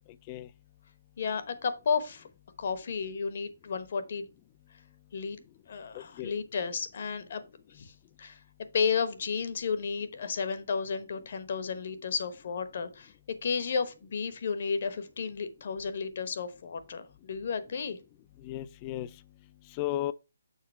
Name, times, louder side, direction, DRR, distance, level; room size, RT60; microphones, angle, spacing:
voice 1, 1.2-2.3 2.6-4.3 5.1-5.4 5.7-7.4 7.7-7.9 8.2-8.4 8.7-13.1 13.4-18.0, left 5 dB, 50° left, 1.0 m, -32 dB
voice 2, 5.9-6.4 18.4-19.1 19.7-20.1, left 14 dB, 20° left, 0.3 m, -34 dB
6.5 x 4.1 x 4.4 m
hypercardioid pair, 165°, 0 cm